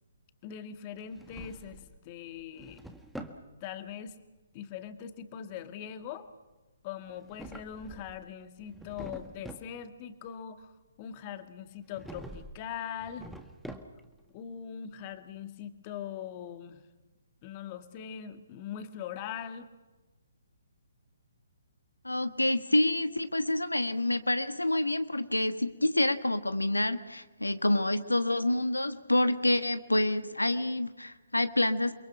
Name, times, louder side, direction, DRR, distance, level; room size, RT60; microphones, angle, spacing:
voice 1, 0.4-2.8 3.6-4.2 4.5-6.3 6.8-10.7 11.0-13.3 14.3-16.8 17.4-19.7, left 8 dB, 30° left, 9 dB, 1.9 m, -41 dB
Drawer open or close, 1.0-2.0 2.4-3.4 7.1-8.2 8.6-9.7 11.9-12.6 12.9-14.2, right 1 dB, ahead, 1.6 m, -46 dB
voice 2, 22.0-31.9, left 1 dB, 85° left, 10 dB, 1.4 m, -27 dB
29.0 x 23.0 x 6.0 m, 1.2 s
figure-of-eight pair, 135°, 0 cm